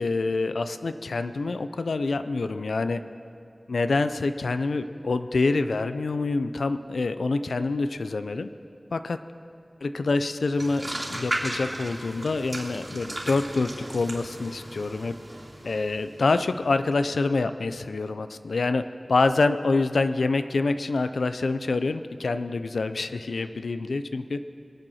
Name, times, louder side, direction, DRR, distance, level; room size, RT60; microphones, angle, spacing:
voice 1, 0.0-3.0 3.7-8.5 8.9-9.2 9.8-15.1 15.6-18.8 19.1-24.4, left 3 dB, 90° left, 10 dB, 0.5 m, -26 dB
sound 1, 10.6-16.4, right 1 dB, 35° right, 2.7 m, -36 dB
22.5 x 7.6 x 6.4 m, 2.5 s
wide cardioid pair, 45°, 0 cm